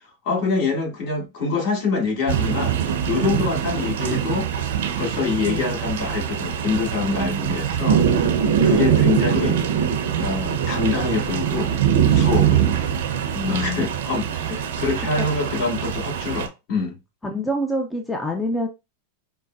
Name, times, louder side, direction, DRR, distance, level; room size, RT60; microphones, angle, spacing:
voice 1, 0.2-2.7 3.1-4.5 4.9-8.0 8.4-9.6 10.2-11.8 12.0-12.8 13.5-17.0, left 4 dB, 55° left, 2.0 m, -25 dB
sound 1, 2.3-16.5, right 8 dB, 75° right, 0.8 m, -22 dB
voice 2, 5.3-5.7 7.0-7.6 13.3-13.9 15.2-15.3 17.2-18.7, left 1 dB, 10° left, 0.6 m, -27 dB
5.5 x 2.2 x 2.5 m
hypercardioid pair, 125°, 0 cm